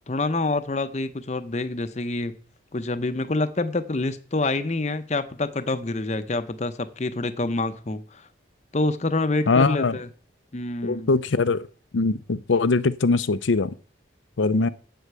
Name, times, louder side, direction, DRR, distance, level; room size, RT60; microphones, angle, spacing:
voice 1, 0.1-2.4 2.7-8.2 8.7-10.1 10.5-11.1 14.6-14.7, left 2 dB, 35° left, 0.7 m, -27 dB
voice 2, 9.5-10.0 10.8-11.7 11.9-13.7 14.4-14.7, left 3 dB, 80° left, 0.6 m, -21 dB
8.6 x 8.1 x 6.8 m
head